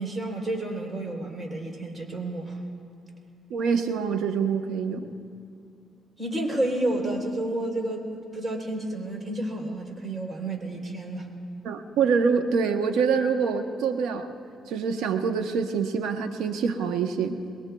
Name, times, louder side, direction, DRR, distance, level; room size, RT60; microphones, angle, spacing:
voice 1, 0.0-2.6 6.2-11.3, right 1 dB, 35° right, 1 dB, 3.3 m, -30 dB
voice 2, 3.5-5.1 11.6-14.3 14.7-17.4, right 6 dB, 85° right, 6 dB, 1.0 m, -25 dB
23.0 x 21.5 x 2.3 m, 2.6 s
cardioid pair, 80°, 0 cm